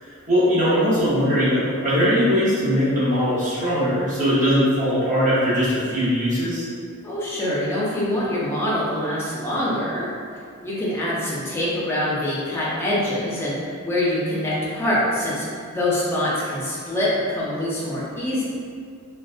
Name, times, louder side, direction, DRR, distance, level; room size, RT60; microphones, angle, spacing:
voice 1, 0.0-6.7, equal, 35° right, -11 dB, 0.8 m, -20 dB
voice 2, 7.0-10.0 10.6-15.4 15.7-18.4, left 1 dB, 10° left, -7 dB, 0.4 m, -24 dB
2.3 x 2.1 x 2.4 m, 2.2 s
head